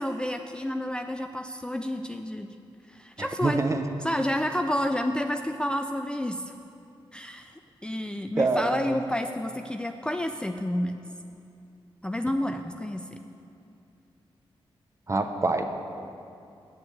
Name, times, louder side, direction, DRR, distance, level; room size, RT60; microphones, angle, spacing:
voice 1, 0.0-2.5 2.9-3.6 4.0-6.4 7.1-7.5 7.8-10.9 12.0-13.2, left 1 dB, 10° left, 6 dB, 0.4 m, -30 dB
voice 2, 3.2-3.8 8.4-9.0 15.1-15.6, right 3 dB, 30° right, 6 dB, 0.8 m, -26 dB
8.2 x 6.9 x 8.5 m, 2.6 s
cardioid pair, 70°, 10 cm